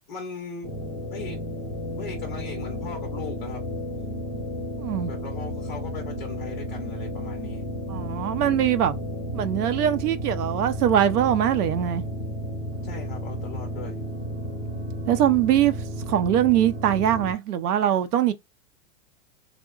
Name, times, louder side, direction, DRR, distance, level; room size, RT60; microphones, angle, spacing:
voice 1, 0.1-0.7 1.1-1.4 2.0-3.6 5.0-7.6 12.8-14.0, left 5 dB, 35° left, 0.4 m, -38 dB
sound 1, 0.6-17.3, equal, 25° right, 0.7 m, -33 dB
voice 2, 4.8-5.1 7.9-8.9 9.3-12.0 15.1-18.3, right 10 dB, 75° right, 0.6 m, -22 dB
3.7 x 2.1 x 2.3 m
supercardioid pair, 180°, 47 cm